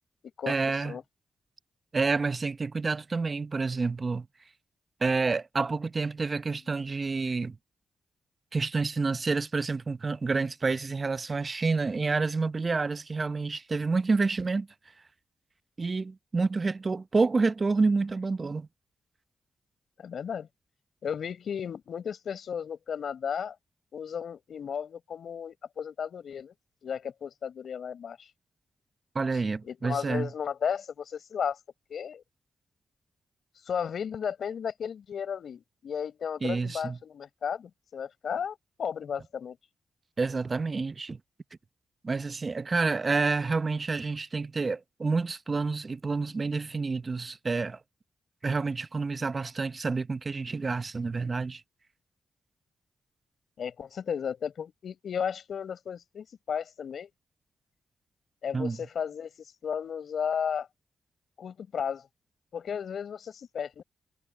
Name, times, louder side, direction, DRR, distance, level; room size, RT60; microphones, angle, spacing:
voice 1, 0.5-1.0 1.9-4.3 5.0-7.6 8.5-14.7 15.8-18.7 29.1-30.3 36.4-37.0 40.2-41.2 42.0-47.8 48.4-51.6 58.5-58.8, right 4 dB, 40° right, 0.8 m, -28 dB
voice 2, 20.0-20.5 21.0-23.5 23.9-26.5 26.8-28.3 29.6-31.6 31.9-32.2 33.7-39.6 53.6-57.1 58.4-60.7 61.4-62.0 62.5-63.8, left 7 dB, 75° left, 4.8 m, -34 dB
cardioid pair, 60°, 0 cm